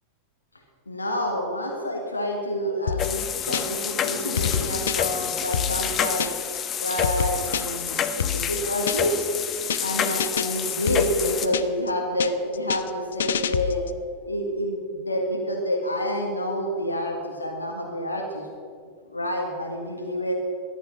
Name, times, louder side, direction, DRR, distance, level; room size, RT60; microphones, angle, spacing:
voice 1, 0.9-6.3 6.8-9.2 9.8-13.8 14.3-18.4 19.1-20.4, equal, 80° left, 2 dB, 1.6 m, -28 dB
sound 1, 2.9-3.9 4.2-6.6 6.9-9.2 9.5-9.9 10.2-11.9 12.2-14.0, left 8 dB, 65° left, 0.5 m, -28 dB
sound 2, 3.0-11.5, left 8 dB, 30° left, 0.9 m, -28 dB
13.5 x 11.0 x 6.3 m, 2.2 s
figure-of-eight pair, 90°, 0 cm